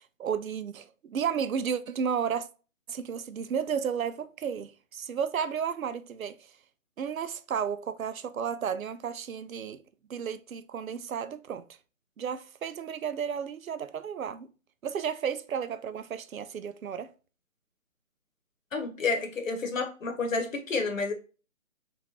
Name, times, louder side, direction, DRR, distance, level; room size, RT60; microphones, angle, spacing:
voice 1, 0.0-2.5 2.9-6.5 7.0-9.8 10.1-11.7 12.2-14.5 14.8-17.1, right 7 dB, 80° right, 0.5 m, -33 dB
voice 2, 18.7-21.1, left 4 dB, 70° left, 1.0 m, -30 dB
3.8 x 2.5 x 2.8 m
figure-of-eight pair, 160°, 41 cm